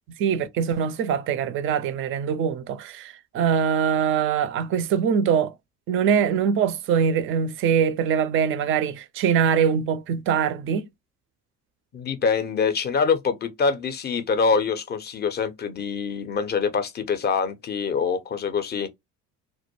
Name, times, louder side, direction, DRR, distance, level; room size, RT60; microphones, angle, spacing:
voice 1, 0.2-5.5 5.9-10.8, right 7 dB, 30° right, 0.4 m, -23 dB
voice 2, 11.9-18.9, left 5 dB, 25° left, 0.5 m, -25 dB
2.2 x 2.1 x 2.8 m
figure-of-eight pair, 60°, 45 cm